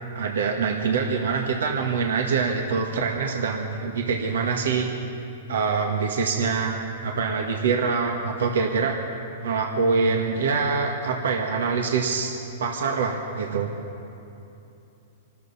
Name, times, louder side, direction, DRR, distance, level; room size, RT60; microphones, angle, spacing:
voice 1, 0.2-4.9 5.5-6.7 7.0-8.9 9.4-12.3 12.6-13.7, right 5 dB, 80° right, 1 dB, 1.7 m, -24 dB
26.5 x 13.0 x 4.2 m, 2.8 s
hypercardioid pair, 130°, 0 cm